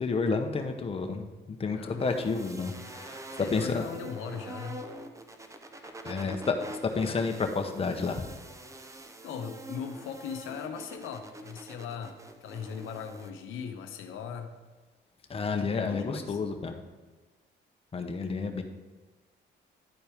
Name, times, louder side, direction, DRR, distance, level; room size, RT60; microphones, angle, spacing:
voice 1, 0.0-3.8 6.0-6.6 6.8-8.3 15.3-16.8 17.9-18.6, left 4 dB, 30° left, 5 dB, 0.8 m, -30 dB
sound 1, 2.0-13.3, right 1 dB, 15° right, 0.6 m, -45 dB
voice 2, 3.4-4.9 6.2-6.3 8.9-9.0 9.2-14.5 15.4-16.4, left 6 dB, 85° left, 6 dB, 0.7 m, -39 dB
10.5 x 4.3 x 3.5 m, 1.3 s
cardioid pair, 90°, 20 cm